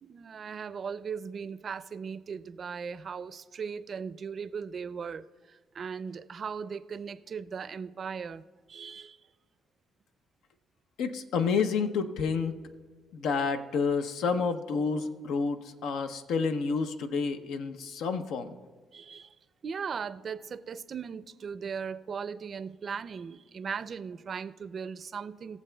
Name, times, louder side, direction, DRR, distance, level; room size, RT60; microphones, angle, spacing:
voice 1, 0.0-8.4 8.7-9.2 18.9-19.4 19.6-25.6, right 6 dB, 50° right, 14 dB, 0.4 m, -38 dB
voice 2, 11.0-12.5 13.1-18.6, left 5 dB, 85° left, 8 dB, 0.6 m, -29 dB
21.0 x 7.2 x 2.2 m, 1.5 s
cardioid pair, 90°, 0 cm